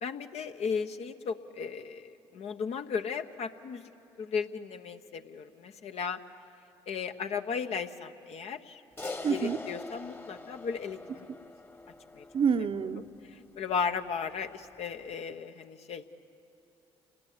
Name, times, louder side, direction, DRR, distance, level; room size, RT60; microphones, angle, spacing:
voice 1, 0.0-3.8 4.2-6.2 6.9-11.3 12.1-12.2 13.0-13.1 13.6-16.0, left 6 dB, 60° left, 7 dB, 1.2 m, -35 dB
Crash cymbal, 9.0-13.6, left 3 dB, 20° left, 1.4 m, -44 dB
voice 2, 9.2-9.6 12.3-13.1, right 6 dB, 50° right, 10 dB, 0.9 m, -27 dB
29.0 x 19.5 x 8.7 m, 2.8 s
hypercardioid pair, 60°, 12 cm